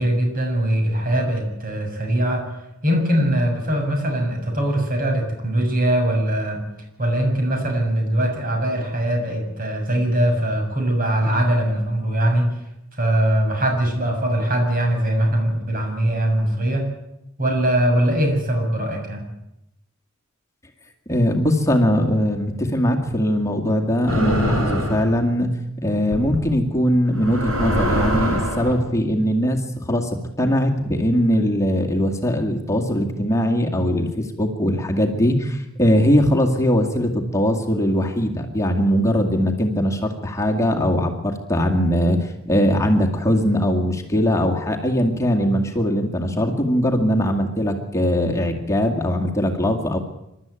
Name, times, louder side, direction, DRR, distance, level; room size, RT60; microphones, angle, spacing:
voice 1, 0.0-2.4 2.8-6.6 7.0-12.5 13.0-16.9 17.4-19.2, right 1 dB, 45° right, 2 dB, 7.0 m, -21 dB
voice 2, 21.1-25.5 25.8-30.1 30.4-50.0, equal, 15° left, 1 dB, 2.2 m, -20 dB
sound 1, 24.1-25.1 26.1-26.4 27.1-28.7, equal, 70° right, 7.7 m, -22 dB
27.0 x 12.5 x 9.1 m, 0.87 s
head